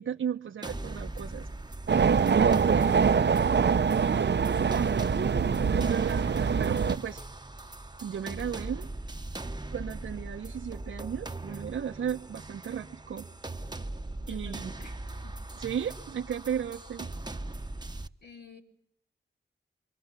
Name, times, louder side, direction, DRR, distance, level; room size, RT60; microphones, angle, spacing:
voice 1, 0.0-1.5 2.3-3.5 4.0-7.2 8.0-8.9 9.7-13.3 14.3-14.7 15.6-17.1, right 8 dB, 85° right, 3 dB, 1.3 m, -35 dB
sound 1, 0.6-18.1, right 2 dB, 20° right, 1.4 m, -40 dB
sound 2, 1.9-7.0, right 6 dB, 60° right, 1.0 m, -24 dB
voice 2, 14.2-15.0 15.2-15.3 18.2-18.6, left 3 dB, 55° left, 2 dB, 4.4 m, -50 dB
27.5 x 24.0 x 8.3 m, 0.77 s
cardioid pair, 45°, 20 cm